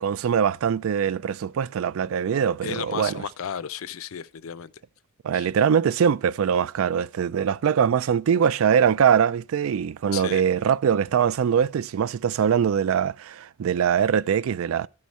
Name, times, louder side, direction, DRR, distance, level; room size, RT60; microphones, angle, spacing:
voice 1, 0.0-3.2 5.2-14.9, right 7 dB, 75° right, 0.3 m, -22 dB
voice 2, 2.6-4.7 5.3-5.5 10.1-10.4, left 8 dB, 75° left, 0.5 m, -34 dB
12.0 x 4.8 x 4.1 m
head